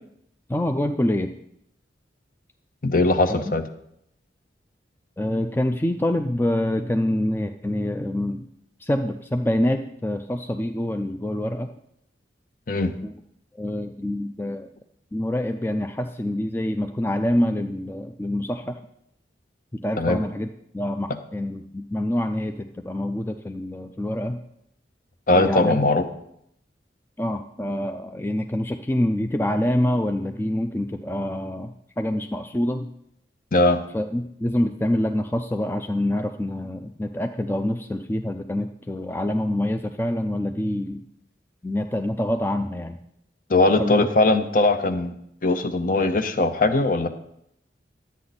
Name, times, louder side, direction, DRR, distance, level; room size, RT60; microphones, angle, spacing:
voice 1, 0.5-1.3 3.3-3.4 5.2-8.4 8.8-11.7 13.0-13.1 13.6-14.7 15.1-18.8 19.8-20.5 20.7-24.4 25.3-25.9 27.2-32.9 33.9-41.0 41.6-43.0 43.8-44.1, left 1 dB, 10° left, 6 dB, 0.4 m, -26 dB
voice 2, 2.8-3.6 12.7-12.9 20.0-20.2 25.3-26.0 33.5-33.8 43.5-45.1 45.4-47.1, left 2 dB, 50° left, 8 dB, 0.8 m, -20 dB
11.5 x 8.5 x 4.1 m, 0.75 s
head